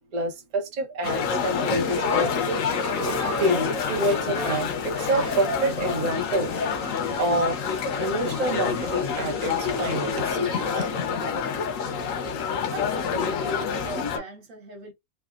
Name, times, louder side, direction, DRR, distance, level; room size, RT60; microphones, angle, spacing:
voice 1, 0.1-2.6 3.4-6.5 7.2-10.9, right 1 dB, 35° right, 0.7 m, -27 dB
sound 1, 1.0-14.2, left 6 dB, 85° left, 1.0 m, -27 dB
sound 2, 1.9-10.3, right 2 dB, 15° left, 0.6 m, -39 dB
voice 2, 12.7-14.9, right 1 dB, 70° right, 1.3 m, -39 dB
3.2 x 2.1 x 2.4 m
omnidirectional pair, 1.4 m